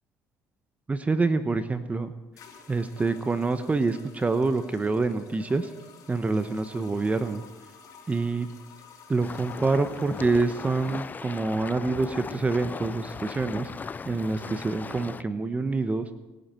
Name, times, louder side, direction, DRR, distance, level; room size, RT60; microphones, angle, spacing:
voice 1, 0.9-2.1 2.7-5.7 6.1-7.4 8.1-8.5 9.1-13.7 14.1-16.1, right 3 dB, 20° right, 10 dB, 1.0 m, -26 dB
sound 1, 1.5-1.6 2.4-11.1, left 6 dB, 65° left, 4.7 m, -51 dB
sound 2, 9.2-15.2, left 5 dB, 25° left, 0.4 m, -38 dB
25.0 x 10.5 x 4.4 m, 1.1 s
supercardioid pair, 85°, 7 cm